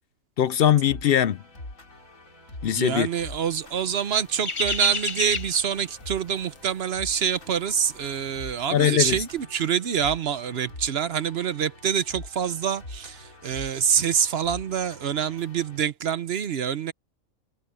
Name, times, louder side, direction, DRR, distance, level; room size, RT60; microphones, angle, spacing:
voice 1, 0.4-1.4 2.6-3.1 8.7-9.2, left 10 dB, 60° left, 0.6 m, -21 dB
sound 1, 0.8-15.8, left 1 dB, 80° left, 5.4 m, -44 dB
voice 2, 2.7-16.9, right 8 dB, 55° right, 0.9 m, -26 dB
sound 2, 3.5-8.6 8.8-9.1, left 4 dB, 25° left, 0.8 m, -32 dB
omnidirectional pair, 1.4 m